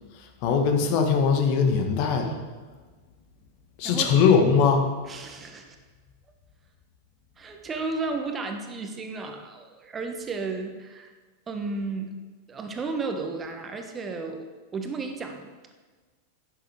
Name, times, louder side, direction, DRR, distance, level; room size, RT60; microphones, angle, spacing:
voice 1, 0.4-2.4 3.8-4.9, left 5 dB, 45° left, 5 dB, 1.5 m, -21 dB
voice 2, 5.1-5.8 7.4-11.1 11.5-12.1 12.5-14.4 14.7-15.5, right 3 dB, 20° right, 5 dB, 1.3 m, -33 dB
10.5 x 8.9 x 4.9 m, 1.3 s
figure-of-eight pair, 90°, 0 cm